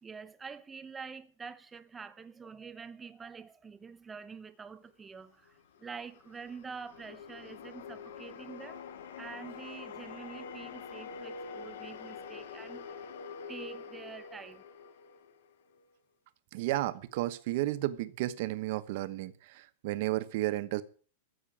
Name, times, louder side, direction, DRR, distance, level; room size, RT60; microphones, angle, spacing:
voice 1, 0.0-8.8 9.2-12.9 13.5-14.6, right 5 dB, 10° right, 0.8 m, -46 dB
sound 1, 5.5-15.8, left 5 dB, 65° left, 1.8 m, -46 dB
voice 2, 16.5-20.8, right 16 dB, 45° right, 1.1 m, -33 dB
14.0 x 6.8 x 8.9 m
supercardioid pair, 170°, 0 cm